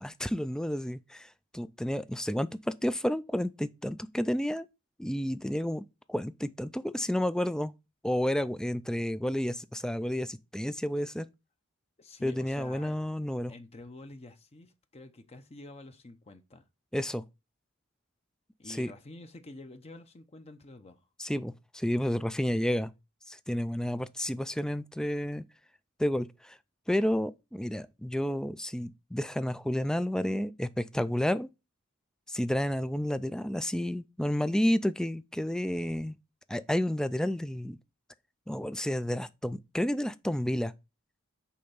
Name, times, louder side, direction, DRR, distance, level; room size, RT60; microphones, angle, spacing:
voice 1, 0.0-4.7 5.0-7.7 8.0-11.3 12.2-13.5 16.9-17.2 18.7-18.9 21.2-22.9 23.3-25.4 26.0-26.6 26.9-31.5 32.3-36.2 36.5-37.8 38.5-40.7, left 1 dB, 5° left, 0.3 m, -31 dB
voice 2, 12.0-13.0 13.5-16.6 18.6-21.1, left 2 dB, 30° left, 0.7 m, -48 dB
8.5 x 3.4 x 5.5 m
head